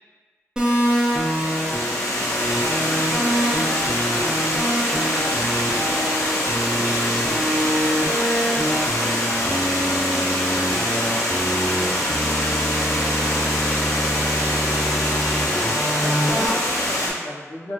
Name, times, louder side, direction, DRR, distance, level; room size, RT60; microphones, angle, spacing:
Water, 0.6-17.1, left 1 dB, 90° left, 0.5 m, -24 dB
sound 1, 0.6-16.5, equal, 15° right, 0.6 m, -25 dB
voice 1, 0.6-4.3 4.9-6.1 6.6-9.0 10.0-11.4 12.9-15.2, equal, 65° right, -9 dB, 1.0 m, -41 dB
voice 2, 15.8-17.7, left 1 dB, 45° left, -6 dB, 0.7 m, -35 dB
2.7 x 2.6 x 2.5 m, 1.4 s
wide cardioid pair, 50°, 5 cm